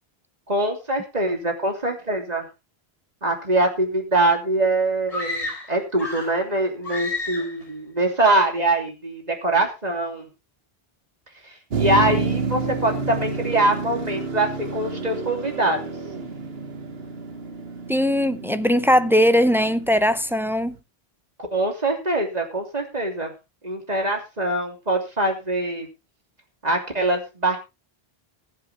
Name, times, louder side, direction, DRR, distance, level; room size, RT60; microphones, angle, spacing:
voice 1, 0.5-2.5 3.2-10.3 11.8-15.9 21.4-23.3 23.6-25.9 26.6-27.6, right 2 dB, 40° right, 3.3 m, -23 dB
sound 1, 5.1-6.4 6.8-7.6, left 2 dB, 35° left, 4.7 m, -31 dB
Motor vehicle (road), 11.7-20.7, right 4 dB, 75° right, 1.9 m, -30 dB
voice 2, 17.9-20.8, equal, 5° right, 0.5 m, -19 dB
21.0 x 7.6 x 3.4 m
omnidirectional pair, 1.0 m